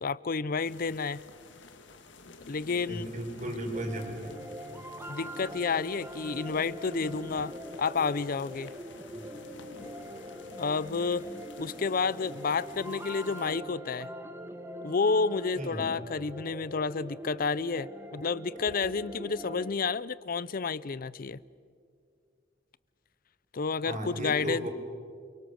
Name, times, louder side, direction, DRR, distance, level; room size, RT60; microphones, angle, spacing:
voice 1, 0.0-1.2 2.5-3.1 3.5-3.6 5.1-7.5 7.8-8.7 10.6-11.3 11.6-14.1 14.8-21.4 23.5-24.7, left 4 dB, 50° left, 20 dB, 0.6 m, -30 dB
sound 1, 0.6-13.6, left 3 dB, 90° left, 1.8 m, -51 dB
voice 2, 2.9-4.3 9.1-9.2 15.6-16.0 23.8-24.7, right 1 dB, 45° right, 2 dB, 4.5 m, -35 dB
sound 2, 3.7-19.7, equal, 15° right, 1.4 m, -43 dB
29.5 x 24.0 x 6.5 m, 2.2 s
head